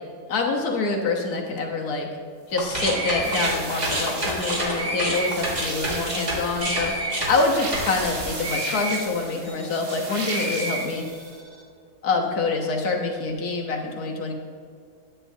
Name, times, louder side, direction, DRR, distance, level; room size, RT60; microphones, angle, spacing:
voice 1, 0.3-2.1 2.5-6.9 7.3-11.1 12.0-14.3, left 3 dB, 70° left, 1 dB, 1.6 m, -26 dB
sound 1, 2.5-9.9 10.2-11.4, right 1 dB, 25° right, 1.6 m, -29 dB
sound 2, 3.2-11.4, right 3 dB, 40° right, 1.2 m, -36 dB
10.0 x 9.1 x 2.7 m, 2.3 s
omnidirectional pair, 1.7 m